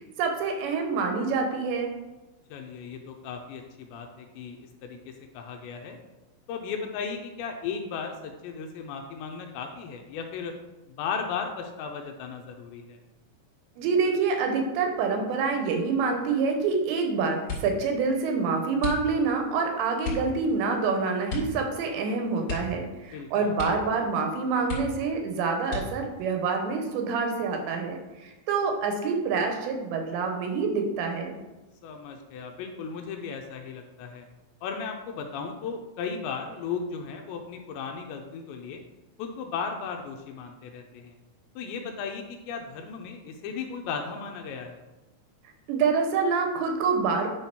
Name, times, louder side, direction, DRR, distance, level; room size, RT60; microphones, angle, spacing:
voice 1, 0.2-1.9 13.8-31.4 45.7-47.3, right 4 dB, 80° right, 3 dB, 3.0 m, -27 dB
voice 2, 2.5-6.0 6.5-10.5 10.9-13.0 23.1-23.5 31.8-34.3 34.6-38.8 39.2-41.1 41.6-44.8, left 6 dB, 85° left, 3 dB, 2.8 m, -36 dB
sound 1, 17.4-17.9 18.8-19.4 20.0-20.3 21.3-21.6 21.9-22.0 22.4-23.2 23.5-24.0 24.3-24.4 24.6-25.2 25.7-26.2 26.9-27.5 27.9-28.3, left 4 dB, 45° left, 3.5 m, -35 dB
9.9 x 3.6 x 5.8 m, 1.1 s
omnidirectional pair, 5.5 m